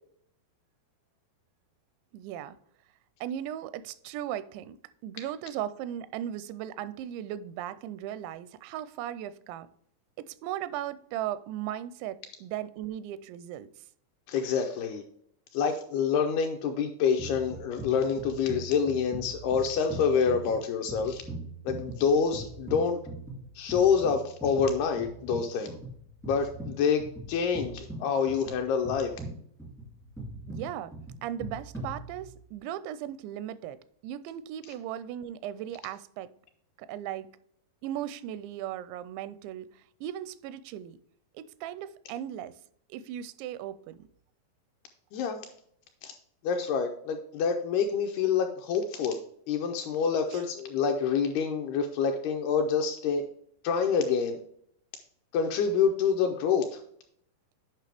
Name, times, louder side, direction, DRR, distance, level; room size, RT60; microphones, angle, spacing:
voice 1, 2.1-2.6 3.2-4.8 5.0-9.7 10.2-13.7 30.5-30.9 31.2-36.3 36.8-37.3 37.8-41.0 41.3-42.5 42.9-44.0 50.3-50.4, right 11 dB, 85° right, 15 dB, 2.8 m, -37 dB
voice 2, 14.3-15.0 15.5-21.2 21.7-23.0 23.6-25.8 26.3-29.1 45.1-45.4 46.0-46.2 46.4-49.2 49.5-53.3 53.6-54.4 55.3-56.8, left 6 dB, 80° left, 4 dB, 2.4 m, -27 dB
sound 1, 17.2-32.6, right 2 dB, 5° left, 0.3 m, -42 dB
9.0 x 5.5 x 3.3 m, 0.67 s
omnidirectional pair, 5.1 m